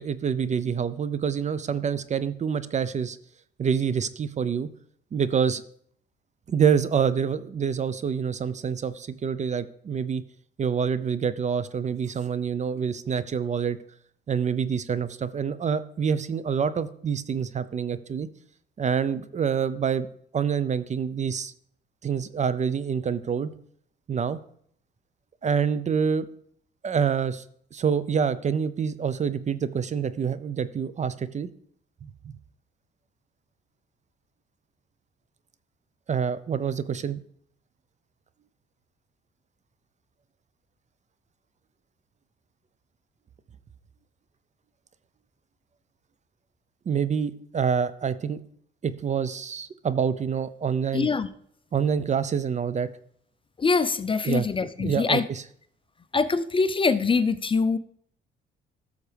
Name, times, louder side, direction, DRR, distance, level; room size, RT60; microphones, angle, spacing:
voice 1, 0.0-3.2 3.6-4.7 5.1-5.6 6.5-10.2 10.6-13.8 14.3-18.3 18.8-20.1 20.3-21.5 22.0-23.5 24.1-24.4 25.4-26.3 26.8-27.4 27.7-31.5 32.0-32.1 36.1-37.2 46.9-48.4 48.8-51.1 51.7-52.9 54.2-54.5 54.8-55.2, right 7 dB, 35° right, 15 dB, 0.5 m, -26 dB
voice 2, 50.9-51.3 53.6-55.2 56.1-57.8, left 4 dB, 25° left, 13 dB, 0.5 m, -23 dB
13.5 x 6.5 x 3.4 m, 0.64 s
cardioid pair, 90°, 20 cm